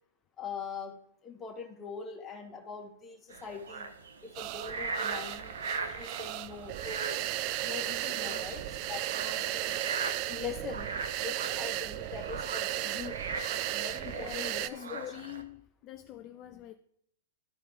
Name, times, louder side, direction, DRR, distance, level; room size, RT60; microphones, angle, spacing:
voice 1, 0.4-1.0 1.2-3.9 4.2-7.2 7.6-9.8 10.3-10.9 11.2-13.2 13.7-15.0, left 5 dB, 20° left, 1.8 m, -42 dB
sound 1, 3.3-15.4, right 4 dB, 75° right, 1.0 m, -40 dB
sound 2, 4.3-14.7, right 14 dB, 45° right, 0.4 m, -35 dB
voice 2, 5.9-6.2 8.0-8.5 9.2-9.5 13.5-16.7, left 12 dB, 35° left, 0.5 m, -46 dB
13.5 x 4.6 x 3.6 m
hypercardioid pair, 115°, 0 cm